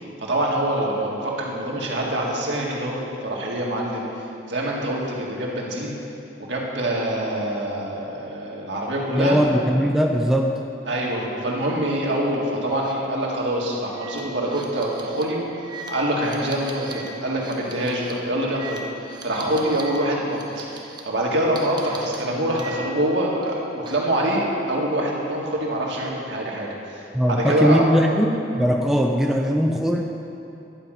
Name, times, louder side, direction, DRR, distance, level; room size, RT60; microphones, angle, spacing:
voice 1, 0.3-4.1 4.5-6.0 6.4-9.4 10.9-15.4 15.9-18.8 19.2-27.8, right 1 dB, 70° right, -3 dB, 1.8 m, -25 dB
voice 2, 9.1-10.5 27.1-30.0, equal, ahead, 1 dB, 0.4 m, -20 dB
sound 1, 12.7-12.9 13.2-13.4 13.9-20.0 20.2-21.0 21.6-23.1 23.4-24.2, right 3 dB, 25° right, 0.9 m, -40 dB
11.0 x 5.2 x 7.5 m, 2.8 s
head